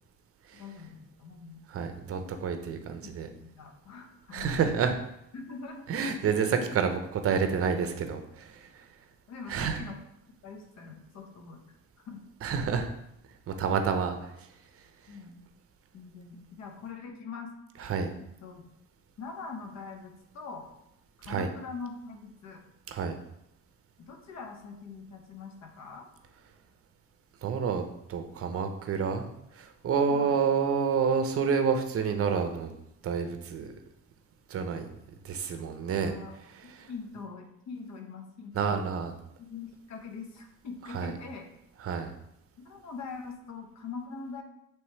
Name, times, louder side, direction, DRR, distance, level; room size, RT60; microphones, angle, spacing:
voice 1, 0.5-1.6 3.0-4.5 5.3-6.2 9.3-10.0 10.4-11.6 12.0-12.2 15.1-15.4 15.9-17.5 18.4-18.6 19.2-20.7 21.2-22.6 24.0-26.1 30.1-30.3 36.0-38.8 39.4-41.5 42.6-44.4, left 4 dB, 60° left, 4 dB, 0.8 m, -43 dB
voice 2, 1.7-3.3 4.3-5.0 5.9-8.5 9.5-9.8 12.4-12.9 13.5-14.1 17.8-18.1 21.2-21.5 22.9-23.2 27.4-27.8 28.1-29.3 29.6-32.7 33.0-33.7 34.5-34.9 35.2-36.1 38.5-39.1 40.9-41.1 41.8-42.1, right 6 dB, 50° right, 7 dB, 0.6 m, -28 dB
3.1 x 3.1 x 4.3 m, 0.80 s
cardioid pair, 90°, 30 cm